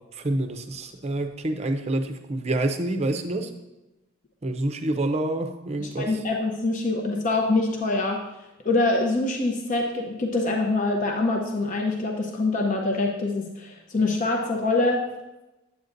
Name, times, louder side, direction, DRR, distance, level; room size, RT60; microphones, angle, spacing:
voice 1, 0.2-3.5 4.4-6.1, right 1 dB, 30° right, 6 dB, 0.6 m, -27 dB
voice 2, 5.8-8.3 8.6-15.1, left 2 dB, 40° left, 1 dB, 0.7 m, -25 dB
9.1 x 8.2 x 2.6 m, 0.99 s
head